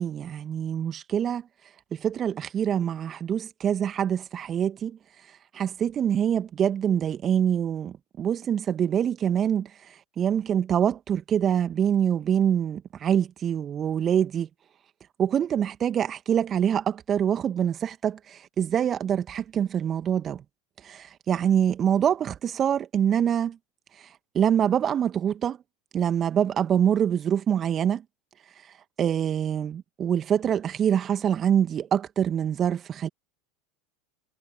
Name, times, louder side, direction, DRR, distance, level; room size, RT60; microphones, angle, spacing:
voice 1, 0.0-1.5 1.9-5.0 5.5-14.5 15.2-20.4 20.8-23.6 24.0-24.1 24.3-25.6 25.9-28.0 29.0-33.1, right 9 dB, 35° right, 2.0 m, -25 dB
figure-of-eight pair, 80°, 0 cm